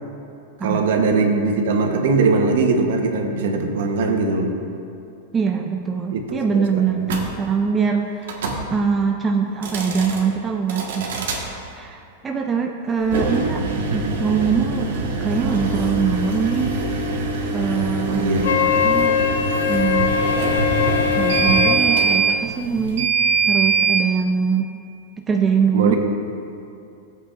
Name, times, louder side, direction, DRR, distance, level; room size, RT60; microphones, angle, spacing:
voice 1, 0.6-4.5 6.1-6.8 18.1-18.5 25.7-26.0, right 3 dB, 65° right, 4 dB, 1.0 m, -20 dB
voice 2, 5.3-8.4 8.7-11.2 11.8-13.7 13.9-14.9 15.2-16.8 17.5-18.3 18.6-19.2 19.7-20.5 21.1-23.1 23.5-24.7 25.2-26.0, right 6 dB, 10° right, 3 dB, 0.3 m, -23 dB
sound 1, 7.0-7.3 8.2-8.6 9.5-10.2 10.7-11.4 13.0-24.0, right 3 dB, 80° right, 1.4 m, -23 dB
Wind instrument woodwind instrument, 18.4-21.8, left 8 dB, 70° left, 0.5 m, -21 dB
15.5 x 8.0 x 2.5 m, 2.6 s
supercardioid pair, 175°, 0 cm